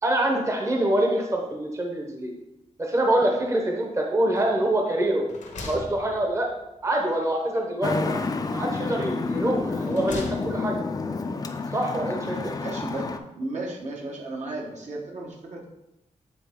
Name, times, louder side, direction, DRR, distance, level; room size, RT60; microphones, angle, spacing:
voice 1, 0.0-2.3 2.8-5.3 5.7-6.5 6.8-8.3 8.5-10.7 11.7-12.5, right 1 dB, 25° right, 1 dB, 0.8 m, -25 dB
sound 1, 4.3-4.8 5.1-6.7 8.0-8.9 9.5-10.8, left 2 dB, 85° left, 1.2 m, -41 dB
Traffic noise roadway noise, 7.8-13.2, left 4 dB, 30° left, 0.4 m, -29 dB
voice 2, 12.6-13.1 13.4-15.7, right 2 dB, 70° right, -1 dB, 1.3 m, -34 dB
8.7 x 3.7 x 3.6 m, 0.93 s
wide cardioid pair, 135°, 12 cm